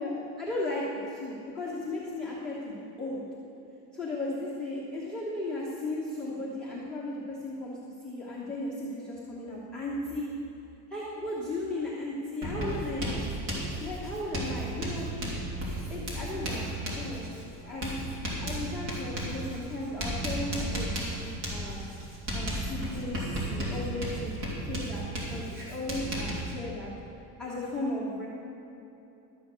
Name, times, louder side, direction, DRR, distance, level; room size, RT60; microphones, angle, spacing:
voice 1, 0.0-3.2 4.0-7.8 8.0-10.3 10.9-13.3 13.8-15.1 15.9-18.0 18.4-21.9 22.3-24.4 24.7-26.9 27.4-28.3, left 2 dB, ahead, -7 dB, 1.0 m, -35 dB
Writing, 12.4-26.5, right 1 dB, 40° right, 2.9 m, -34 dB
12.5 x 8.1 x 6.1 m, 2.9 s
cardioid pair, 180°, 43 cm